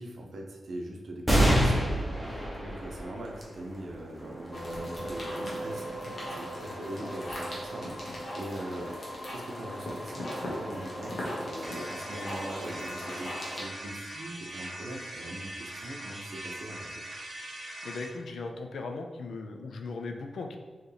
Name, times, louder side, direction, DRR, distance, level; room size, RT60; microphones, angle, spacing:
voice 1, 0.0-16.9, right 1 dB, 55° right, 0 dB, 0.6 m, -41 dB
sound 1, 1.3-8.2 8.8-8.9 10.0-10.5, equal, 5° right, 0.7 m, -30 dB
sound 2, 4.5-13.6, equal, 40° left, 1.1 m, -37 dB
sound 3, 11.6-18.1, right 1 dB, 35° right, 0.9 m, -41 dB
voice 2, 17.8-20.6, left 3 dB, 70° left, 4 dB, 0.4 m, -38 dB
4.5 x 3.0 x 3.3 m, 1.4 s
wide cardioid pair, 175°, 0 cm